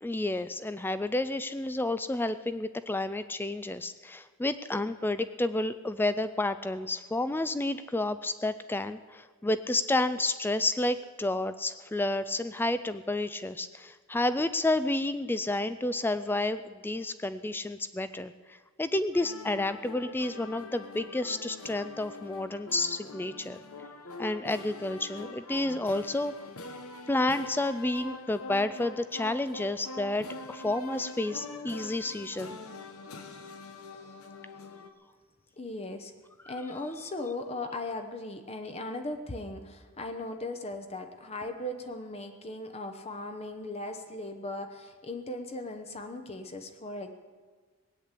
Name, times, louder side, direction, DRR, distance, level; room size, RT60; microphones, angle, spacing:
voice 1, 0.0-23.6 24.2-26.3 27.1-32.6 36.4-36.5, left 2 dB, 10° left, 12 dB, 0.3 m, -30 dB
sound 1, 19.1-34.9, left 3 dB, 90° left, 1.2 m, -44 dB
voice 2, 35.6-36.1 36.5-47.1, left 2 dB, 30° left, 6 dB, 0.9 m, -38 dB
19.0 x 8.6 x 8.2 m, 1.5 s
head